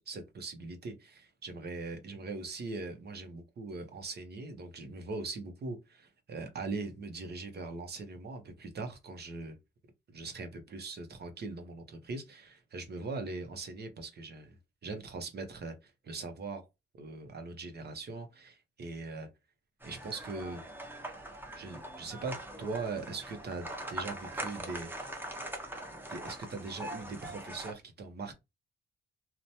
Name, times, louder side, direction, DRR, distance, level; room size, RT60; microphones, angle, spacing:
voice 1, 0.0-9.6 10.1-16.6 17.0-19.3 19.8-20.6 21.5-25.2 26.1-28.3, right 3 dB, 50° right, 0.8 m, -41 dB
sound 1, 19.8-27.7, right 1 dB, 10° right, 0.7 m, -42 dB
2.9 x 2.2 x 2.7 m
cardioid pair, 100°, 21 cm